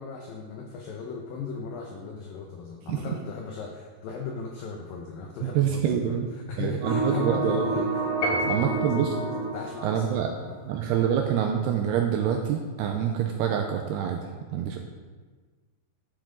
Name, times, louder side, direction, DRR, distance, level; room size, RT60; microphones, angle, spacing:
voice 1, 0.0-6.2 6.5-9.2 9.5-10.6, left 4 dB, 85° left, 1 dB, 2.0 m, -37 dB
voice 2, 5.4-6.3 6.6-7.7 8.5-9.1 9.8-10.3 10.6-14.2 14.5-14.8, right 9 dB, 85° right, 3 dB, 2.4 m, -26 dB
sound 1, 6.8-10.7, right 3 dB, 55° right, 2.5 m, -30 dB
Piano, 8.2-9.1, equal, 55° left, 2.5 m, -30 dB
11.5 x 7.2 x 3.8 m, 1.4 s
omnidirectional pair, 5.3 m